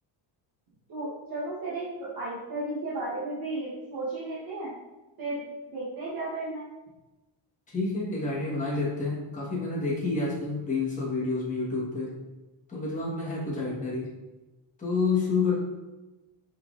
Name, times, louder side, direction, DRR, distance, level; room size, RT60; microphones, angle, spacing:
voice 1, 0.9-4.7 5.2-5.4 5.7-6.7, right 2 dB, 50° right, -8 dB, 1.1 m, -34 dB
voice 2, 7.7-12.1 12.7-14.1 14.8-15.6, left 3 dB, 15° left, -6 dB, 1.2 m, -29 dB
5.7 x 3.5 x 2.4 m, 1.1 s
cardioid pair, 160°, 46 cm